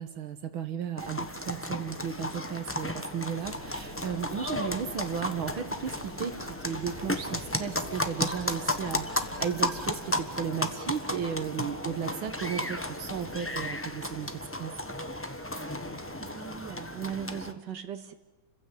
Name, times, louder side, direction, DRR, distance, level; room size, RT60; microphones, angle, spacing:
voice 1, 0.0-14.3 14.6-14.8, right 8 dB, 80° right, 7 dB, 2.1 m, -35 dB
sound 1, 1.0-17.5, left 1 dB, 10° left, 1.0 m, -34 dB
sound 2, 3.4-13.8, equal, 75° left, 5.8 m, -49 dB
voice 2, 16.2-18.1, right 8 dB, 60° right, 6 dB, 2.3 m, -38 dB
30.0 x 16.0 x 10.0 m, 1.1 s
omnidirectional pair, 2.2 m